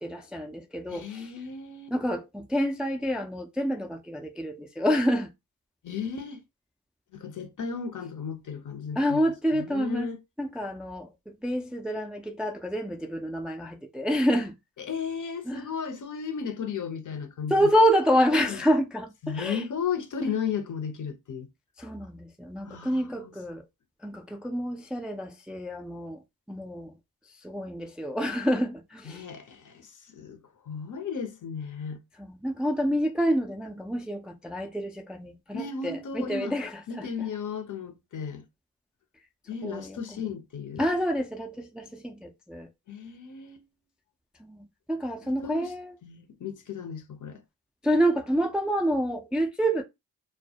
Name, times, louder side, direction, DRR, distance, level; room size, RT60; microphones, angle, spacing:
voice 1, 0.0-1.3 1.9-5.3 9.0-10.1 10.4-14.6 15.5-15.7 17.5-19.6 20.2-20.3 21.8-23.6 24.0-27.0 27.4-29.2 32.2-37.3 39.6-40.0 40.8-42.7 44.4-45.9 47.8-49.8, equal, ahead, 0.3 m, -28 dB
voice 2, 0.9-1.9 5.8-6.4 7.1-9.2 9.5-10.2 14.8-17.7 18.3-18.6 19.2-21.5 22.6-23.3 29.1-32.0 35.5-36.5 36.9-38.4 39.5-40.9 42.9-43.6 45.2-45.7 46.0-47.4, left 6 dB, 50° left, 0.7 m, -35 dB
2.2 x 2.1 x 2.7 m
supercardioid pair, 40°, 38 cm